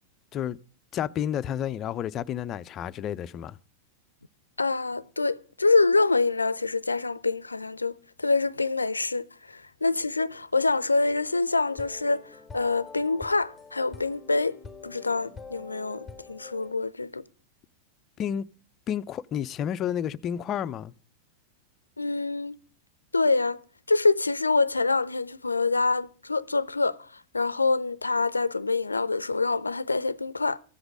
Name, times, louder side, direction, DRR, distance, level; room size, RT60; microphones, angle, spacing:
voice 1, 0.9-3.6 18.2-18.4 18.9-20.9, left 9 dB, 30° left, 0.5 m, -30 dB
voice 2, 4.6-14.6 14.8-17.2 22.0-22.6 23.1-23.6 23.9-30.6, left 3 dB, 80° left, 0.5 m, -26 dB
sound 1, 11.7-16.7, left 4 dB, 10° left, 0.9 m, -46 dB
14.5 x 8.0 x 5.1 m
figure-of-eight pair, 90°, 0 cm